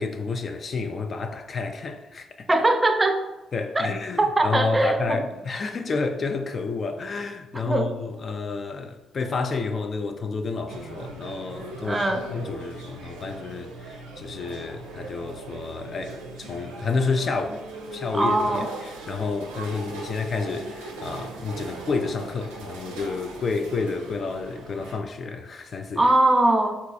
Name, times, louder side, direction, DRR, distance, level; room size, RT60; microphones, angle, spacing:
voice 1, 0.0-2.5 3.5-12.0 12.3-26.1, left 4 dB, 50° left, 0.3 m, -30 dB
voice 2, 2.5-3.2 3.8-3.9 4.2-5.2 7.5-7.9 11.8-12.3 18.1-18.7 26.0-26.8, right 2 dB, 20° right, 0.4 m, -21 dB
sound 1, 10.7-25.0, right 2 dB, 90° right, 0.4 m, -39 dB
3.7 x 2.4 x 2.6 m
hypercardioid pair, 50°, 0 cm